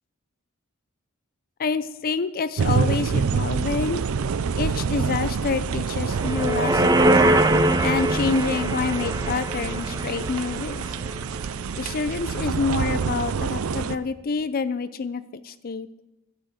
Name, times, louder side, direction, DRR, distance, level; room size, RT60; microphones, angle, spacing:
voice 1, 1.6-4.0 4.5-7.2 7.8-10.9 11.7-15.9, left 4 dB, 45° left, 14 dB, 0.5 m, -27 dB
sound 1, 2.6-14.0, right 5 dB, 75° right, 0.5 m, -27 dB
sound 2, 6.1-11.5 11.8-11.9, right 1 dB, 20° right, 0.6 m, -23 dB
13.5 x 6.3 x 7.9 m, 0.96 s
head